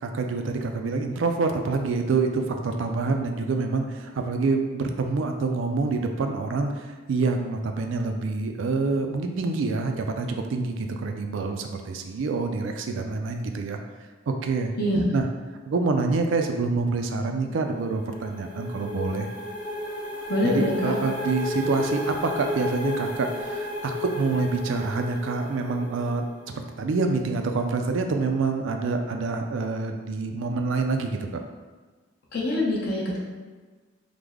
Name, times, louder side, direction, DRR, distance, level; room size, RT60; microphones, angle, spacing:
voice 1, 0.0-13.8 14.3-14.7 15.1-15.2 15.7-19.3 20.4-31.2, right 3 dB, 70° right, 5 dB, 0.4 m, -27 dB
sound 1, 17.6-26.3, left 1 dB, 20° left, 0.9 m, -33 dB
voice 2, 20.3-20.9 32.3-33.2, left 1 dB, 50° left, -4 dB, 0.7 m, -24 dB
3.3 x 2.1 x 3.5 m, 1.4 s
head